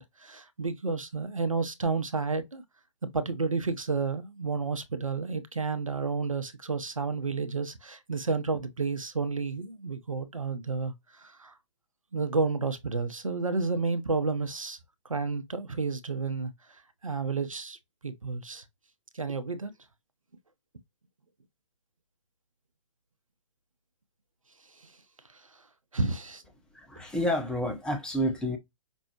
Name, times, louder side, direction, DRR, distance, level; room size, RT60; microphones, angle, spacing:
voice 1, 0.0-2.6 3.1-11.5 12.1-14.8 15.0-16.5 17.0-17.8 18.0-18.6 19.1-19.7 24.8-24.9 25.9-26.4, right 4 dB, 85° right, 0.7 m, -31 dB
voice 2, 26.7-28.6, equal, 5° left, 0.6 m, -29 dB
5.3 x 2.0 x 2.8 m
figure-of-eight pair, 125°, 17 cm